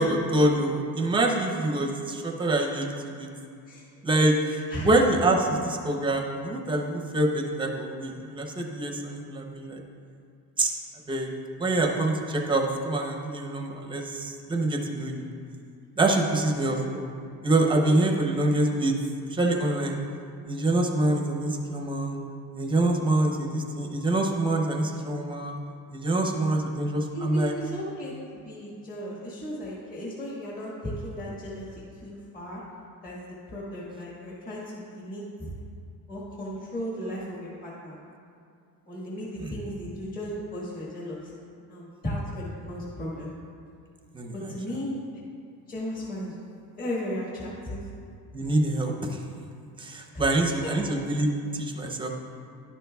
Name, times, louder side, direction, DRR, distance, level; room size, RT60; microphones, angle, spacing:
voice 1, 0.0-3.3 4.0-4.4 4.8-9.8 10.6-10.7 11.1-11.3 11.6-15.3 16.0-17.1 17.4-18.9 19.3-20.0 20.5-22.2 22.5-25.5 25.9-27.5 39.4-39.6 44.1-44.3 48.3-49.2 49.8-52.2, right 2 dB, 15° right, 2 dB, 0.6 m, -25 dB
voice 2, 27.1-32.6 33.0-33.2 33.5-35.5 36.1-38.0 38.9-41.2 41.7-43.3 44.3-45.2 45.7-46.3 46.8-47.8 50.1-50.7, equal, 25° left, -6 dB, 1.5 m, -35 dB
11.0 x 10.5 x 2.3 m, 2.4 s
cardioid pair, 170°, 37 cm